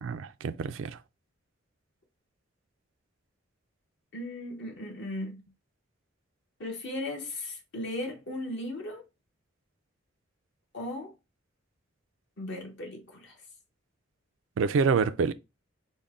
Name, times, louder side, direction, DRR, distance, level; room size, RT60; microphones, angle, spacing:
voice 1, 0.0-1.0 14.6-15.3, right 5 dB, 70° right, 0.3 m, -27 dB
voice 2, 4.1-5.4 6.6-9.0 10.7-11.1 12.4-13.4, left 1 dB, 65° left, 1.0 m, -37 dB
5.2 x 2.1 x 3.6 m
head